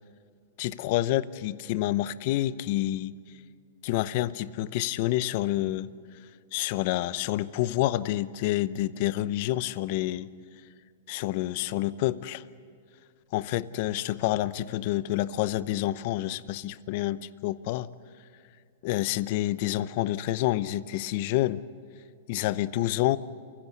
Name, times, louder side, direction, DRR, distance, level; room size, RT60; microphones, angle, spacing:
voice 1, 0.6-3.1 3.8-5.9 6.5-10.3 11.1-12.4 13.3-17.9 18.8-21.6 22.3-23.2, left 15 dB, 50° left, 16 dB, 0.8 m, -28 dB
30.0 x 16.5 x 9.8 m, 2.2 s
hypercardioid pair, 130°, 0 cm